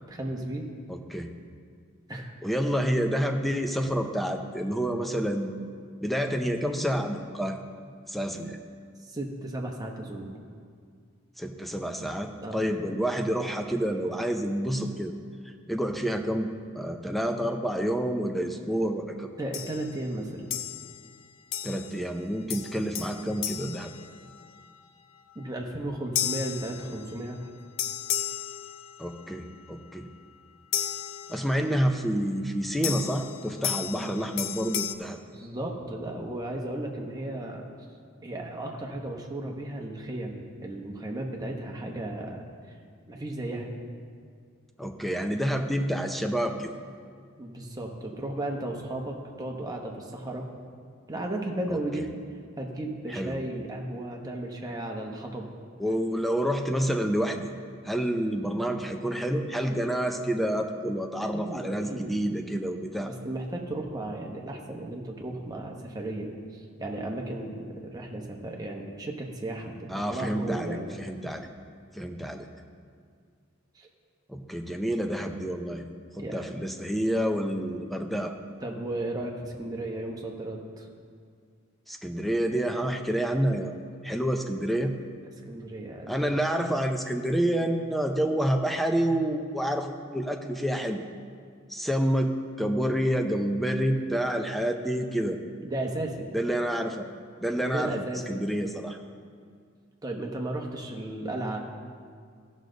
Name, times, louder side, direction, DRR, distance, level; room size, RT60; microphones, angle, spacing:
voice 1, 0.1-0.6 2.1-2.3 9.1-10.3 12.4-12.7 19.4-20.5 25.3-27.5 35.3-37.7 38.2-42.4 43.1-43.7 47.4-50.5 51.1-52.0 52.6-55.5 61.3-62.4 63.0-70.9 73.8-73.9 76.2-76.7 78.6-80.9 85.5-86.1 95.6-96.3 97.7-98.4 100.0-101.6, right 1 dB, 20° right, 0 dB, 1.0 m, -35 dB
voice 2, 0.9-1.3 2.4-5.5 6.0-7.6 8.1-8.6 11.4-15.1 15.5-19.3 21.6-23.9 29.0-30.1 31.3-35.2 44.8-46.7 51.7-52.0 53.1-53.4 55.8-57.5 57.8-63.1 69.9-71.5 71.9-72.5 74.3-75.8 76.2-78.3 81.9-83.8 84.0-84.9 86.1-91.0 91.7-95.4 96.3-97.1 97.4-97.9 98.3-99.0, equal, ahead, 4 dB, 0.5 m, -28 dB
sound 1, 19.5-19.9 20.5-21.1 21.5-22.1 22.5-24.6 26.2-27.3 27.8-29.2 30.7-31.8 32.8-34.9, left 10 dB, 60° left, 0.5 m, -34 dB
15.0 x 6.4 x 3.9 m, 2.1 s
head